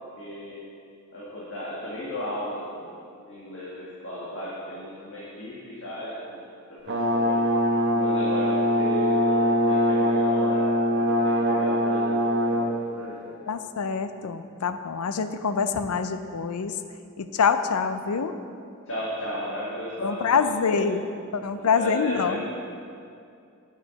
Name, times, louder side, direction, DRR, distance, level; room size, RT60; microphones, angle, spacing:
voice 1, 0.2-0.6 1.1-7.4 7.9-13.4 18.9-20.9 21.6-22.5, left 1 dB, 60° left, -8 dB, 1.7 m, -35 dB
Brass instrument, 6.9-12.7, equal, 55° right, 1.0 m, -22 dB
voice 2, 13.5-16.8 17.2-18.3 20.0-21.0 21.3-22.5, left 5 dB, 80° left, 10 dB, 0.5 m, -25 dB
9.1 x 6.2 x 5.1 m, 2.4 s
head